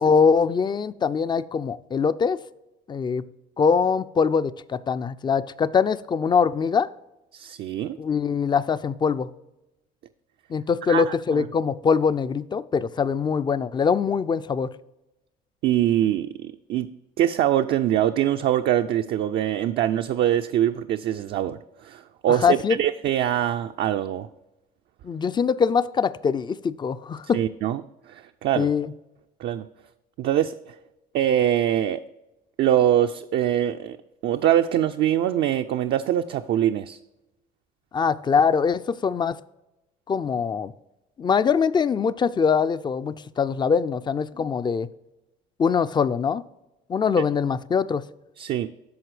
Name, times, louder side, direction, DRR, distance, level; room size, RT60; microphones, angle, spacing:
voice 1, 0.0-2.4 2.9-3.2 3.6-6.9 8.0-9.3 10.5-14.7 22.4-22.8 25.0-27.4 28.6-28.9 37.9-39.4 40.1-40.7 41.2-44.9 45.6-46.4 46.9-48.0, left 6 dB, 20° left, 15 dB, 0.4 m, -23 dB
voice 2, 7.3-8.0 10.9-11.5 15.6-16.9 17.2-24.3 27.3-27.8 28.1-28.7 29.4-29.7 30.2-30.7 31.1-32.0 32.6-34.0 34.2-37.0 48.4-48.7, right 11 dB, 50° right, 6 dB, 0.4 m, -23 dB
12.5 x 4.3 x 3.2 m, 0.97 s
hypercardioid pair, 70°, 21 cm